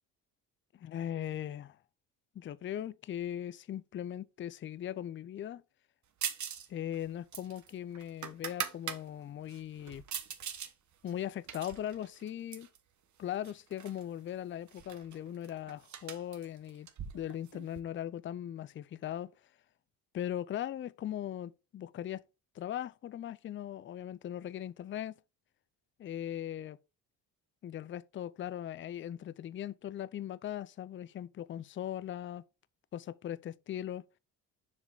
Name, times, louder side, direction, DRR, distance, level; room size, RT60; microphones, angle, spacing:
voice 1, 0.8-1.8 2.3-5.6 6.7-10.0 11.0-12.7 13.2-16.9 17.1-19.3 20.1-22.2 22.6-25.2 26.0-26.8 27.6-32.4 32.9-34.0, left 11 dB, 35° left, 0.4 m, -39 dB
sound 1, 6.2-6.7 6.9-9.0 9.5-10.7 11.1-12.8 13.4-14.0 14.3-14.4 14.7-17.8, right 8 dB, 50° right, 1.2 m, -41 dB
7.1 x 4.9 x 3.8 m
supercardioid pair, 75°, 38 cm